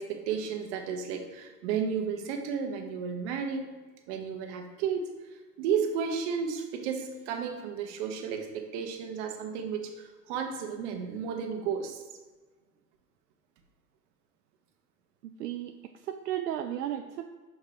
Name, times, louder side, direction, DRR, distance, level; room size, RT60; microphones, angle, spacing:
voice 1, 0.0-3.7 4.1-5.1 5.6-12.0, right 6 dB, 45° right, 5 dB, 1.0 m, -33 dB
voice 2, 15.2-17.3, right 11 dB, 70° right, 6 dB, 0.6 m, -35 dB
5.9 x 5.2 x 3.3 m, 1.3 s
hypercardioid pair, 105°, 50 cm